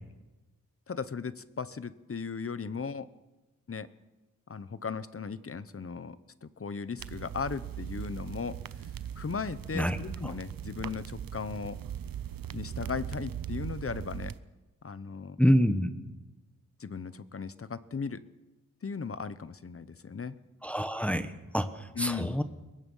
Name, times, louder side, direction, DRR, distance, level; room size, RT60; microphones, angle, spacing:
voice 1, 0.9-3.1 3.7-3.9 4.5-8.6 9.2-11.8 12.5-14.3 14.8-15.4 16.8-18.2 18.8-20.3 21.9-22.4, left 5 dB, 40° left, 15 dB, 0.9 m, -37 dB
sound 1, 7.0-14.4, right 9 dB, 85° right, 0.7 m, -39 dB
voice 2, 15.4-15.9 20.6-22.4, equal, 5° left, 9 dB, 1.1 m, -27 dB
23.0 x 20.0 x 5.6 m, 1.1 s
wide cardioid pair, 115°, 33 cm